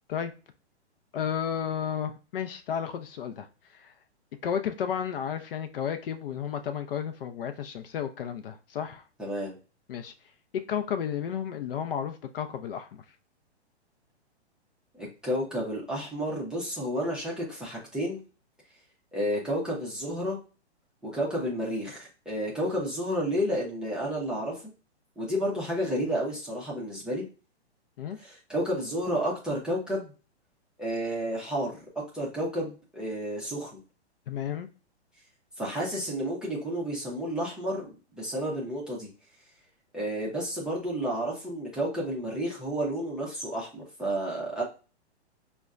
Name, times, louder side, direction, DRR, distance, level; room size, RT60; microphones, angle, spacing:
voice 1, 1.1-3.5 3.7-3.9 4.4-9.0 9.9-10.1 10.5-12.9 28.0-28.2 34.3-34.7, left 8 dB, 55° left, 0.5 m, -32 dB
voice 2, 9.2-9.6 15.0-18.2 19.1-20.4 21.0-24.6 25.2-27.2 28.2-30.1 30.8-31.9 32.1-33.8 35.6-39.1 39.9-44.6, equal, ahead, 0.5 m, -31 dB
5.0 x 2.2 x 2.4 m
hypercardioid pair, 130°, 34 cm